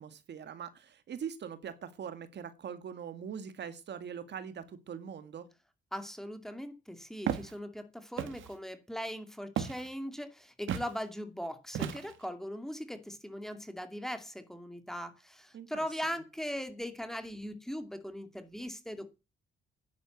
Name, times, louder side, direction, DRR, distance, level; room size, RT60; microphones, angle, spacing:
voice 1, 0.0-5.5 15.5-15.9, right 8 dB, 60° right, 1.9 m, -42 dB
voice 2, 5.9-19.1, equal, ahead, 2.3 m, -40 dB
Walk footsteps, 7.3-7.5 8.2-8.5 9.6-9.9 10.7-10.9 11.7-12.3, right 9 dB, 75° right, 1.6 m, -34 dB
10.5 x 10.0 x 8.0 m
cardioid pair, 90°, 20 cm